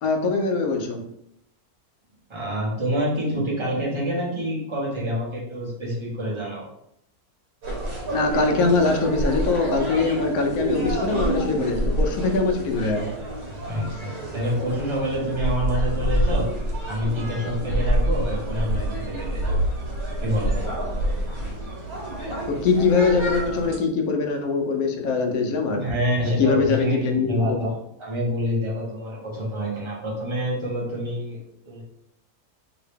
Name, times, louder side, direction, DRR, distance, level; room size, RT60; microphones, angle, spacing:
voice 1, 0.0-1.1 8.1-13.1 22.2-25.9 26.4-27.6, left 4 dB, 75° left, 4 dB, 1.0 m, -22 dB
voice 2, 2.3-6.6 13.7-16.5 16.9-19.6 20.2-20.5 25.8-27.7 28.0-31.4 31.6-31.8, equal, 25° right, -5 dB, 0.8 m, -27 dB
sound 1, 7.6-23.8, right 1 dB, 70° right, 1.5 m, -27 dB
2.8 x 2.8 x 3.4 m, 0.78 s
omnidirectional pair, 1.6 m